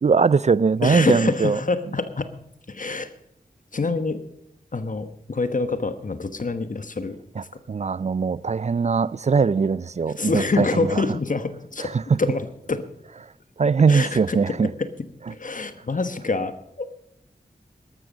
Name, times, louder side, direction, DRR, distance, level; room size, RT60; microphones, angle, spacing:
voice 1, 0.0-1.6 7.4-11.0 11.8-12.2 13.6-14.7, right 5 dB, 45° right, 0.4 m, -21 dB
voice 2, 0.8-2.3 2.7-3.1 3.7-4.2 4.7-7.5 10.1-11.9 12.2-12.8 13.9-14.9 15.3-17.0, left 3 dB, 55° left, 1.2 m, -26 dB
13.5 x 12.5 x 5.1 m
cardioid pair, 40°, 16 cm